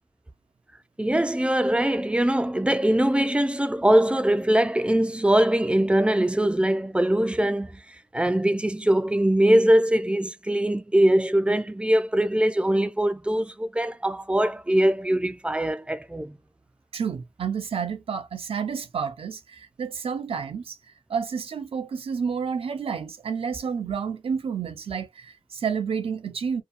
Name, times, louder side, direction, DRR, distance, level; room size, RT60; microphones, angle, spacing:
voice 1, 1.0-7.8 8.1-16.4, right 1 dB, 10° right, 0.4 m, -22 dB
voice 2, 16.9-20.8 21.1-26.6, right 6 dB, 80° right, 0.6 m, -30 dB
2.7 x 2.3 x 2.4 m
cardioid pair, 60°, 10 cm